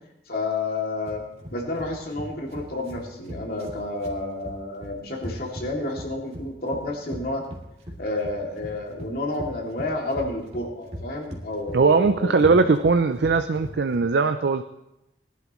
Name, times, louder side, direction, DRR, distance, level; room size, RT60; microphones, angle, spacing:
voice 1, 0.3-1.2 1.5-7.4 8.0-12.6, left 2 dB, 55° left, 0 dB, 2.6 m, -30 dB
sound 1, 1.1-14.0, equal, 35° right, 2.4 m, -39 dB
voice 2, 11.7-14.6, right 4 dB, 70° right, 8 dB, 0.5 m, -20 dB
20.0 x 11.5 x 3.1 m, 0.87 s
head